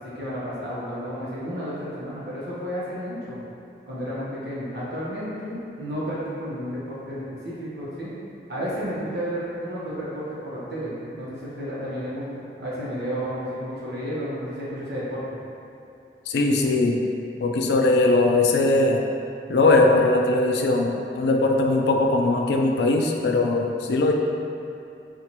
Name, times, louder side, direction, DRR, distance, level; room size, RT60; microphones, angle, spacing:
voice 1, 0.0-3.4 3.9-8.1 8.5-15.2, equal, 70° right, -9 dB, 1.0 m, -32 dB
voice 2, 16.3-17.0 17.4-19.0 19.5-24.1, left 2 dB, 70° left, 2 dB, 0.3 m, -20 dB
4.5 x 2.5 x 2.8 m, 2.7 s
head